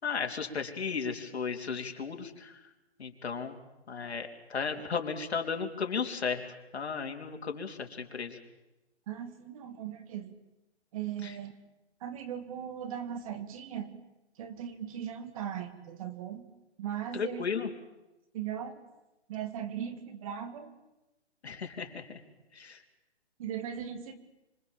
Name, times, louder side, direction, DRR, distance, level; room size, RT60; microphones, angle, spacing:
voice 1, 0.0-2.5 3.0-3.6 3.9-6.4 6.7-8.4 11.2-11.3 17.1-17.7 21.4-22.1 22.5-22.8, left 5 dB, 65° left, 4 dB, 3.6 m, -34 dB
voice 2, 9.1-10.4 10.9-11.5 12.0-13.9 14.4-16.5 16.8-17.4 18.3-18.7 19.3-20.7 23.4-24.2, right 9 dB, 30° right, 9 dB, 2.1 m, -38 dB
27.5 x 26.0 x 7.3 m, 1.0 s
hypercardioid pair, 155°, 34 cm